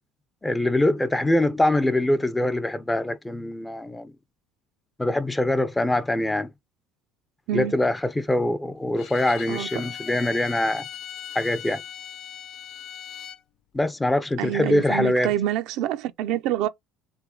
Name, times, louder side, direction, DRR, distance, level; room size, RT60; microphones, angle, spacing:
voice 1, 0.4-4.1 5.0-6.5 7.5-10.9 11.3-11.8 13.7-15.3, left 1 dB, 10° left, 0.6 m, -23 dB
Bowed string instrument, 9.0-13.4, left 9 dB, 65° left, 0.4 m, -39 dB
voice 2, 9.5-9.8 14.4-16.7, right 12 dB, 70° right, 0.5 m, -26 dB
3.4 x 2.8 x 3.8 m
hypercardioid pair, 80°, 0 cm